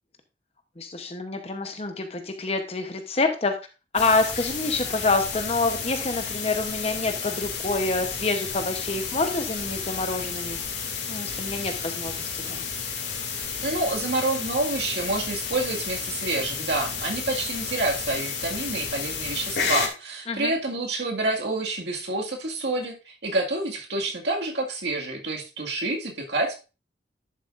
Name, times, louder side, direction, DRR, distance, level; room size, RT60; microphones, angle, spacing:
voice 1, 0.8-3.6 3.9-10.6 11.1-12.6 20.3-20.5, left 3 dB, 35° left, 6 dB, 0.9 m, -27 dB
sound 1, 3.9-19.9, left 6 dB, 85° left, 2.3 m, -32 dB
voice 2, 13.6-26.6, right 2 dB, 70° right, 1 dB, 2.0 m, -28 dB
11.0 x 7.3 x 2.5 m, 0.30 s
head